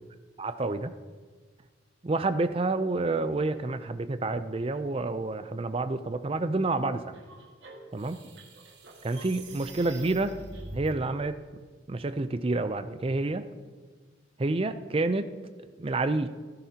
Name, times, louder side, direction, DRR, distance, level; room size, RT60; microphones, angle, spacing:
voice 1, 0.4-0.9 2.0-7.2 7.9-8.2 9.0-10.4 10.7-11.4 11.9-13.4 14.4-15.3 15.8-16.3, right 2 dB, 30° right, 11 dB, 0.5 m, -29 dB
sound 1, 7.1-10.9, right 2 dB, 75° right, 1.8 m, -45 dB
15.5 x 12.5 x 2.9 m, 1.5 s
head